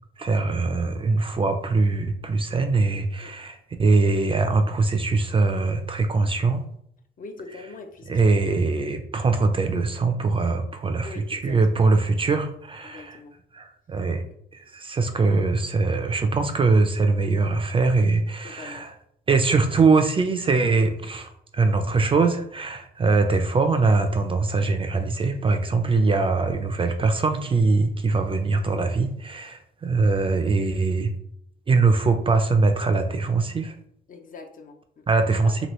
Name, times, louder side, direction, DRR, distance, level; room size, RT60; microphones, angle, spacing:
voice 1, 0.2-6.6 8.1-13.2 13.5-14.2 14.5-18.9 19.3-31.1 31.7-33.7 35.1-35.7, right 3 dB, 25° right, 6 dB, 0.3 m, -22 dB
voice 2, 7.2-8.3 11.0-11.8 12.8-13.3 18.4-18.9 21.0-21.2 34.1-35.1 35.4-35.7, left 3 dB, 45° left, 6 dB, 0.5 m, -42 dB
2.9 x 2.6 x 3.0 m, 0.69 s
cardioid pair, 90°, 20 cm